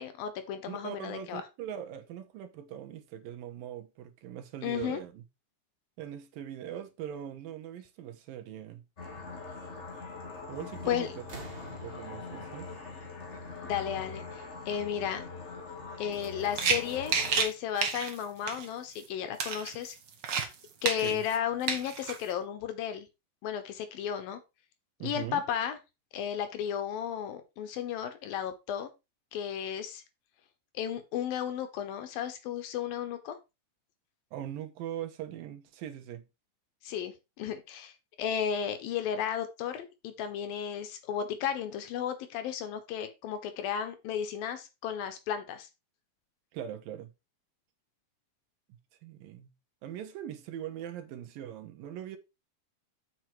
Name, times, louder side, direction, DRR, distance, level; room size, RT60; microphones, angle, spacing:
voice 1, 0.0-1.4 4.6-5.0 10.9-11.1 13.6-14.2 14.7-15.2 16.0-20.0 20.8-23.1 23.4-24.4 25.0-25.8 26.1-28.9 29.3-30.0 30.7-33.4 36.8-37.9 38.2-45.7, left 9 dB, 75° left, 3.1 m, -34 dB
voice 2, 0.7-5.2 6.0-8.8 10.5-11.3 11.6-12.7 21.0-21.2 25.0-25.4 34.3-36.2 46.5-47.1 49.0-49.5 49.8-52.2, right 10 dB, 80° right, 2.8 m, -41 dB
sound 1, 9.0-17.4, left 4 dB, 25° left, 1.6 m, -43 dB
sound 2, 10.6-10.9 11.2-13.9 15.1-15.2, right 2 dB, 25° right, 1.2 m, -50 dB
sound 3, 16.2-16.3 16.5-17.5 17.8-18.2 18.5-18.6 19.0-19.1 19.4-20.5 20.8-21.3 21.7-22.2, right 6 dB, 60° right, 1.1 m, -30 dB
7.8 x 6.1 x 4.7 m
omnidirectional pair, 4.2 m